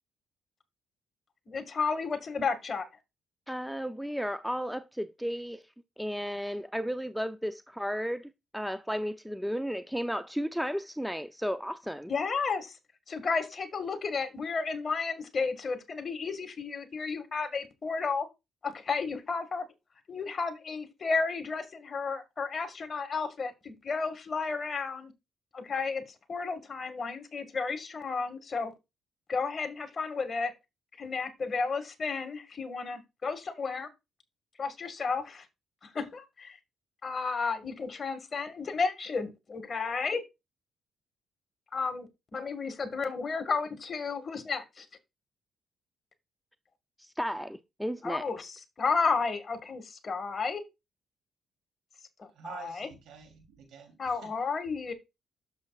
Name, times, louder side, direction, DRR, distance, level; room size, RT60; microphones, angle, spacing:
voice 1, 1.5-2.9 12.1-12.8 13.1-18.3 18.6-19.6 20.1-25.1 25.5-26.0 26.3-28.7 29.3-30.5 31.0-33.9 34.6-35.5 35.8-36.6 37.0-40.2 41.7-44.9 48.0-50.6 52.2-52.9 54.0-54.9, left 4 dB, 40° left, 1.9 m, -32 dB
voice 2, 3.5-5.6 6.0-12.1 47.0-48.2, equal, ahead, 0.5 m, -34 dB
voice 3, 52.3-54.3 54.7-54.9, right 7 dB, 80° right, 3.1 m, -48 dB
10.5 x 7.0 x 2.4 m
cardioid pair, 90°, 0 cm